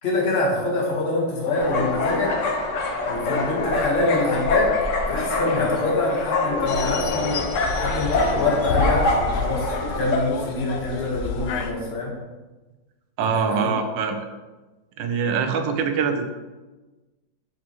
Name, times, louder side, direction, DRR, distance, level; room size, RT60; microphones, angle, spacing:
voice 1, 0.0-2.3 3.1-4.7 5.0-7.4 7.7-12.1 13.2-13.7 14.0-14.1, left 2 dB, 35° left, -3 dB, 1.4 m, -25 dB
sound 1, 1.5-10.2, left 2 dB, 60° left, 0.8 m, -25 dB
sound 2, 6.7-11.7, left 5 dB, 85° left, 1.4 m, -29 dB
voice 2, 13.2-14.2 15.0-16.3, right 6 dB, 80° right, 6 dB, 1.3 m, -24 dB
6.1 x 5.7 x 3.0 m, 1.2 s
omnidirectional pair, 2.1 m